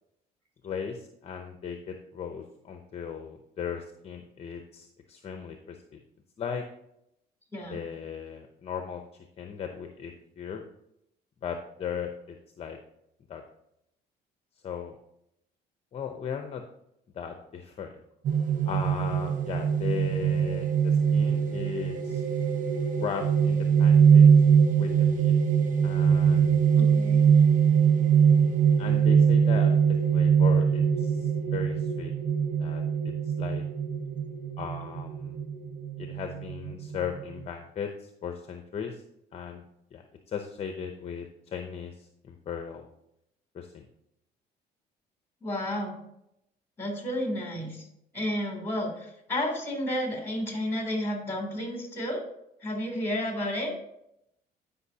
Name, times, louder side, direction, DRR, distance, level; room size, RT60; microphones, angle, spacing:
voice 1, 0.6-5.8 6.4-6.6 7.7-9.0 9.4-10.6 11.4-12.8 13.3-13.4 14.6-15.0 15.9-16.6 17.1-18.0 18.7-22.2 23.0-24.3 24.8-25.3 25.8-26.7 28.8-29.8 30.1-32.1 32.6-33.6 34.6-35.4 36.0-39.0 39.3-39.6 39.9-42.9 43.5-43.9, left 7 dB, 40° left, 5 dB, 0.7 m, -37 dB
sound 1, 18.2-37.4, right 7 dB, 50° right, 1.1 m, -22 dB
voice 2, 26.7-27.2 45.4-46.0 46.8-47.9 48.1-52.2 52.6-53.7, left 1 dB, 10° left, 1 dB, 3.1 m, -31 dB
12.5 x 5.4 x 2.8 m, 0.79 s
cardioid pair, 110°, 17 cm